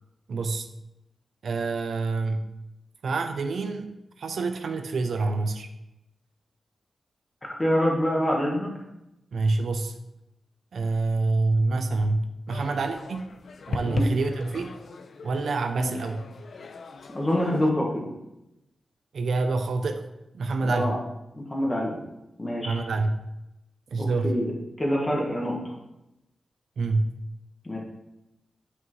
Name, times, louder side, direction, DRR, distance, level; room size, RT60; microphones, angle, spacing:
voice 1, 0.3-0.7 1.4-2.5 3.0-3.9 4.2-5.7 9.3-10.0 10.7-13.3 13.7-14.8 15.2-16.2 19.1-20.0 20.3-21.0 22.6-23.2 23.9-24.4 26.8-27.2, right 3 dB, 60° right, 6 dB, 0.5 m, -27 dB
voice 2, 7.6-8.7 13.8-14.1 15.8-15.9 17.1-18.0 20.6-21.0 21.3-22.0 22.4-22.8 24.0-24.5 24.8-25.7 27.6-27.8, equal, 20° left, -1 dB, 1.3 m, -26 dB
sound 1, 12.5-17.7, left 3 dB, 55° left, 0.4 m, -38 dB
9.6 x 5.4 x 3.1 m, 0.91 s
wide cardioid pair, 180°, 0 cm